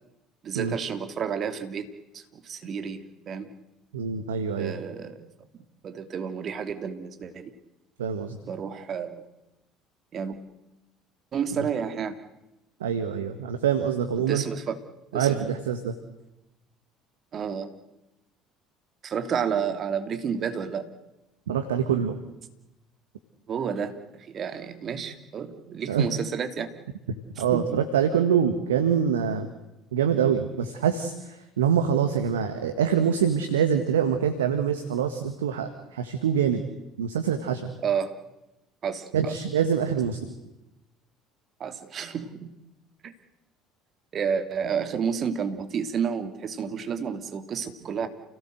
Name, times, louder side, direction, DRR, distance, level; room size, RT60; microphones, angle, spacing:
voice 1, 0.4-1.9 2.1-3.5 4.5-5.3 5.5-7.5 8.5-9.2 10.1-10.4 11.3-12.2 14.2-14.8 15.1-15.4 17.3-17.7 19.0-20.9 23.5-26.7 27.5-27.8 37.8-38.1 38.8-39.3 41.6-42.5 43.0-43.1 44.1-48.1, right 7 dB, 45° right, 8 dB, 2.9 m, -31 dB
voice 2, 3.9-4.7 8.0-8.4 11.6-11.7 12.8-14.4 15.1-15.9 21.5-22.2 25.9-26.1 27.4-29.5 29.9-36.6 37.0-37.7 39.1-40.3, right 8 dB, 80° right, 8 dB, 1.7 m, -25 dB
29.0 x 17.5 x 8.0 m, 0.93 s
hypercardioid pair, 60°, 0 cm